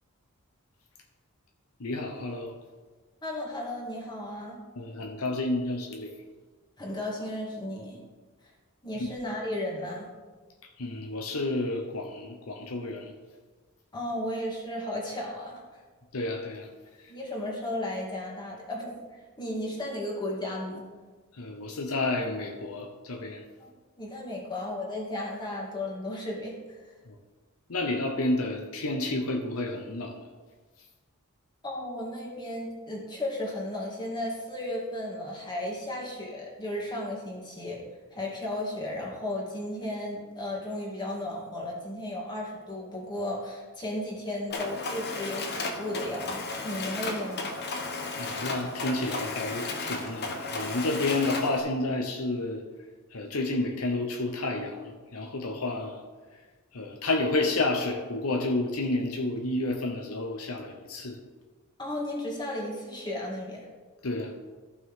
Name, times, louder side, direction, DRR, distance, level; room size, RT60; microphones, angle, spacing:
voice 1, 1.8-2.5 4.8-6.1 8.9-9.2 10.8-13.1 16.1-16.7 21.4-23.4 27.1-27.2 27.7-30.1 48.2-52.6 53.1-56.0 56.7-61.2 64.0-64.3, left 2 dB, 70° left, 3 dB, 0.9 m, -30 dB
voice 2, 3.2-4.6 6.8-8.0 8.8-10.1 13.9-15.6 17.1-19.0 19.4-20.8 23.6-23.7 24.0-26.8 31.6-37.8 38.1-47.5 61.8-63.6, left 1 dB, 20° left, -4 dB, 2.3 m, -34 dB
Mechanisms, 44.5-51.6, left 3 dB, 50° left, 1.1 m, -34 dB
14.0 x 6.1 x 3.7 m, 1.4 s
head